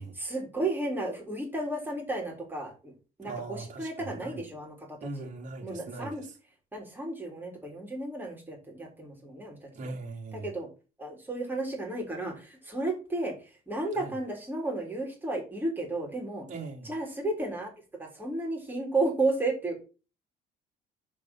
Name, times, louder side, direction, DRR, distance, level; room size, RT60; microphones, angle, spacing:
voice 1, 0.0-2.9 3.2-5.3 5.6-6.2 6.7-9.9 10.3-10.7 11.0-13.3 13.7-16.4 16.8-17.7 18.0-19.8, right 2 dB, 10° right, 4.1 m, -33 dB
voice 2, 3.2-4.4 5.0-6.3 9.8-10.5 13.9-14.1 16.5-16.9, right 3 dB, 45° right, 2.9 m, -40 dB
7.4 x 5.3 x 5.7 m
cardioid pair, 110°, 17 cm